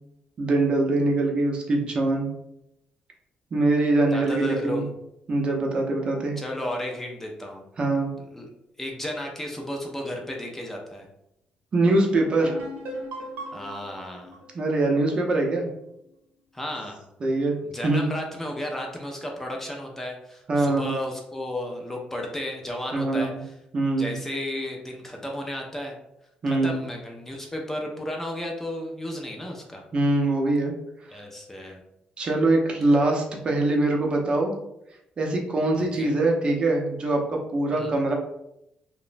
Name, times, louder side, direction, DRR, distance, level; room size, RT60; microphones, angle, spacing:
voice 1, 0.4-2.3 3.5-4.8 5.3-6.4 7.8-8.1 11.7-12.6 14.5-15.7 17.2-18.1 20.5-20.9 22.9-23.4 23.7-24.2 26.4-26.8 29.9-30.7 31.1-31.2 32.2-34.5 35.2-38.1, right 2 dB, 35° right, 1 dB, 0.5 m, -23 dB
voice 2, 4.1-4.9 6.4-7.6 8.3-8.5 8.8-11.1 13.5-14.4 16.5-17.1 17.7-23.5 24.0-25.9 26.5-29.9 31.1-31.8 35.7-36.1 37.7-38.0, left 1 dB, 10° left, 0 dB, 0.4 m, -33 dB
sound 1, 12.4-16.0, equal, 85° right, 0.7 m, -39 dB
2.9 x 2.0 x 2.5 m, 0.82 s
cardioid pair, 125°, 3 cm